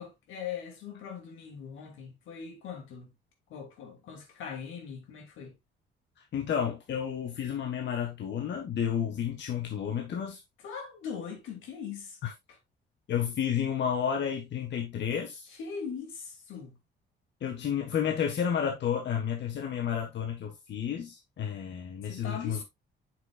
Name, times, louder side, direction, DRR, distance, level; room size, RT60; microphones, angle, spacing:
voice 1, 0.0-3.1 3.5-5.6 10.6-12.2 15.5-16.8 22.0-22.6, left 7 dB, 85° left, 2.7 m, -40 dB
voice 2, 6.3-10.4 12.2-12.3 13.1-15.4 17.4-22.6, left 8 dB, 65° left, 1.6 m, -31 dB
7.9 x 6.4 x 2.5 m
cardioid pair, 90°, 20 cm